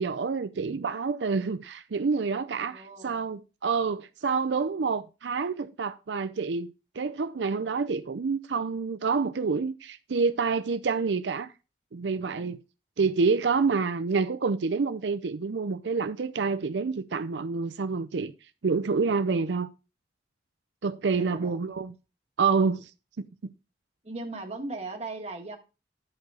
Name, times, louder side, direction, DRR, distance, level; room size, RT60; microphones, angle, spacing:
voice 1, 0.0-11.5 11.9-12.6 13.0-18.3 18.6-19.7 20.8-21.9 22.4-22.9 23.2-23.5, right 4 dB, 90° right, 0.5 m, -28 dB
voice 2, 2.6-3.3 21.2-21.7 24.0-25.6, right 2 dB, 35° right, 1.6 m, -38 dB
10.5 x 4.9 x 4.8 m
head